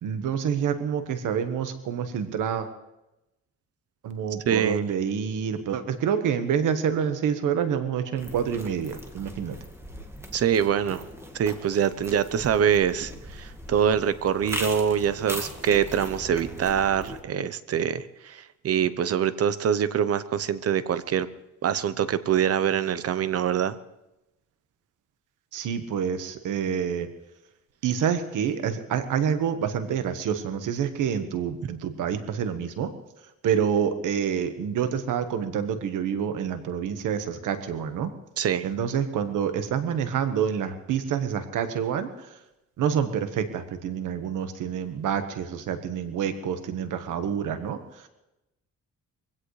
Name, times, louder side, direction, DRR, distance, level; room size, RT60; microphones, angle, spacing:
voice 1, 0.0-2.7 4.0-9.6 25.5-27.1 27.8-32.9 33.4-38.1 38.6-42.3 42.8-48.1, right 8 dB, 85° right, 8 dB, 1.4 m, -27 dB
voice 2, 4.5-4.9 10.3-11.0 11.3-21.3 21.6-23.8 38.4-38.7, right 8 dB, 50° right, 14 dB, 0.8 m, -24 dB
sound 1, 8.2-17.2, right 1 dB, 10° right, 1.8 m, -39 dB
23.0 x 16.5 x 3.3 m, 0.95 s
cardioid pair, 130°, 30 cm